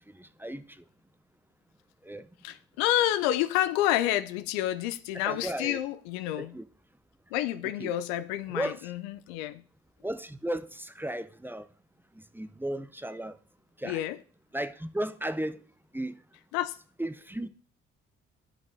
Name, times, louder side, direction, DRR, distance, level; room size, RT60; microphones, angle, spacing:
voice 1, 0.1-0.6 2.0-2.3 5.3-5.8 6.4-6.6 7.8-7.9 8.5-8.8 10.0-11.7 12.2-13.4 13.8-14.0 14.5-15.6 15.9-16.1 17.0-17.5, right 1 dB, 5° right, 0.6 m, -35 dB
voice 2, 2.4-6.6 7.3-9.6 13.8-14.2 16.5-16.8, left 13 dB, 80° left, 0.5 m, -29 dB
13.0 x 5.3 x 2.7 m
hypercardioid pair, 45°, 31 cm